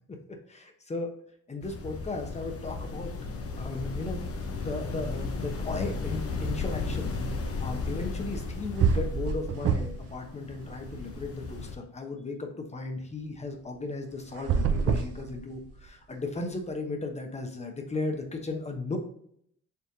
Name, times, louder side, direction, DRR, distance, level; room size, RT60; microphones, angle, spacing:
voice 1, 0.5-1.1 1.5-3.1 3.6-4.3 4.6-19.0, left 3 dB, 20° left, 4 dB, 1.0 m, -36 dB
sound 1, 1.6-11.8, left 3 dB, 50° left, 0.9 m, -35 dB
sound 2, 8.4-8.5 8.8-10.1 10.4-11.5 14.3-15.9, right 6 dB, 50° right, 0.6 m, -27 dB
4.5 x 3.4 x 2.7 m, 0.68 s
cardioid pair, 90°, 30 cm